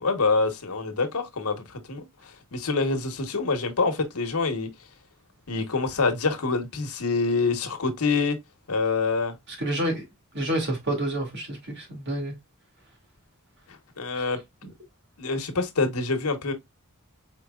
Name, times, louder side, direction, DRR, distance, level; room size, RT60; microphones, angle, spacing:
voice 1, 0.0-2.0 2.5-4.7 5.5-8.4 8.7-9.3 14.0-14.4 15.2-16.5, left 4 dB, 85° left, 1.1 m, -26 dB
voice 2, 9.6-10.0 10.3-12.3 14.2-14.3 14.6-14.7, right 1 dB, 55° right, 2.1 m, -29 dB
4.7 x 4.4 x 2.3 m
head